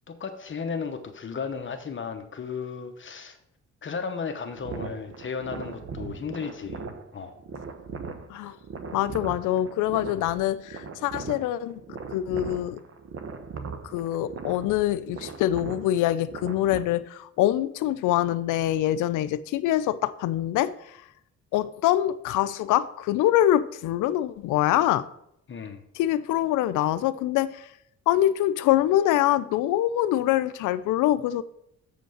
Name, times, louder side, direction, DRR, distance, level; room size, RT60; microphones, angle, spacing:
voice 1, 0.1-3.4 3.8-6.8 7.1-7.4 10.1-10.2 25.5-25.8, left 5 dB, 40° left, 1.0 m, -34 dB
sound 1, 4.6-16.8, right 5 dB, 50° right, 1.1 m, -39 dB
voice 2, 8.9-11.8 12.1-12.8 13.9-20.7 21.5-25.0 26.0-27.7 28.1-31.4, left 13 dB, 85° left, 0.5 m, -24 dB
7.5 x 5.1 x 6.3 m
cardioid pair, 90°, 30 cm